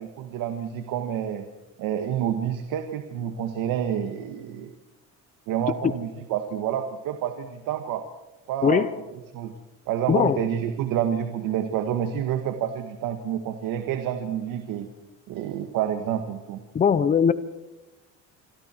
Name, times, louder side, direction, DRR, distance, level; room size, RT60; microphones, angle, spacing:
voice 1, 0.0-1.4 1.8-4.7 5.5-8.1 8.5-8.9 9.3-9.5 9.9-14.9 15.3-16.6, right 9 dB, 80° right, 7 dB, 1.8 m, -28 dB
voice 2, 16.7-17.3, left 7 dB, 25° left, 14 dB, 0.7 m, -20 dB
27.0 x 24.5 x 4.6 m, 1.1 s
cardioid pair, 145°, 33 cm